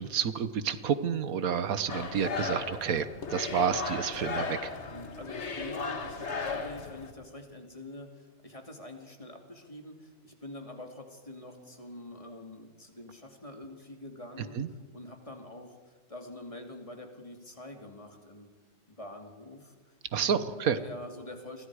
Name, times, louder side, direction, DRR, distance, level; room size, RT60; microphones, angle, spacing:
voice 1, 0.0-3.1 3.3-4.7 14.6-14.7 20.1-20.8, right 7 dB, 90° right, 13 dB, 1.5 m, -29 dB
sound 1, 1.9-7.1, left 4 dB, 55° left, 1.8 m, -36 dB
voice 2, 4.9-18.5 18.9-19.8 20.4-21.7, left 1 dB, 25° left, 3 dB, 2.6 m, -45 dB
30.0 x 23.5 x 4.9 m, 1.4 s
omnidirectional pair, 1.4 m